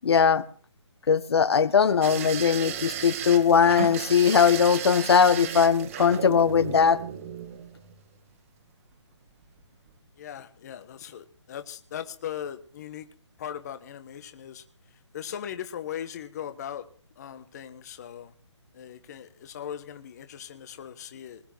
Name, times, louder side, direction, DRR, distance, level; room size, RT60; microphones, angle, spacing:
voice 1, 0.0-0.4 1.1-7.0, left 6 dB, 60° left, 14 dB, 1.5 m, -20 dB
sound 1, 2.0-8.0 9.3-9.6 9.9-10.0, right 9 dB, 30° right, 2.0 m, -35 dB
voice 2, 10.2-13.1 13.4-14.6 15.1-16.8 17.2-18.3 18.7-21.4, left 9 dB, 35° left, 10 dB, 1.3 m, -39 dB
20.5 x 7.0 x 9.1 m, 0.42 s
hypercardioid pair, 160°, 15 cm